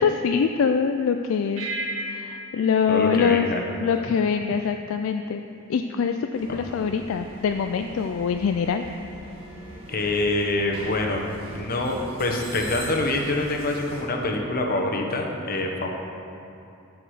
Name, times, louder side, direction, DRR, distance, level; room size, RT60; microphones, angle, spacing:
voice 1, 0.0-1.7 2.1-3.5 3.8-5.4 5.7-8.8, left 6 dB, 60° left, 6 dB, 0.3 m, -24 dB
sound 1, 1.6-4.3, right 2 dB, 70° right, 1.9 m, -35 dB
voice 2, 2.9-3.6 6.5-6.6 9.9-15.9, left 2 dB, 40° left, 1 dB, 0.9 m, -26 dB
sound 2, 6.3-14.0, right 1 dB, 25° right, 2.0 m, -41 dB
14.0 x 4.8 x 4.9 m, 2.7 s
head